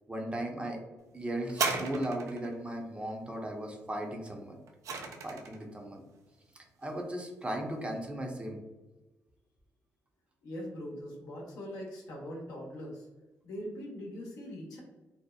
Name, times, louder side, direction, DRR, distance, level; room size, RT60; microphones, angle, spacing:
voice 1, 0.1-0.8 1.1-4.6 5.2-6.0 6.5-8.6, right 1 dB, 20° right, 1 dB, 0.6 m, -37 dB
sound 1, 1.5-2.6 4.3-5.6 6.4-6.5, right 4 dB, 70° right, 0.4 m, -34 dB
voice 2, 10.4-13.1 13.4-14.8, equal, 80° left, -2 dB, 0.7 m, -41 dB
2.7 x 2.0 x 2.3 m, 1.1 s
supercardioid pair, 60°, 6 cm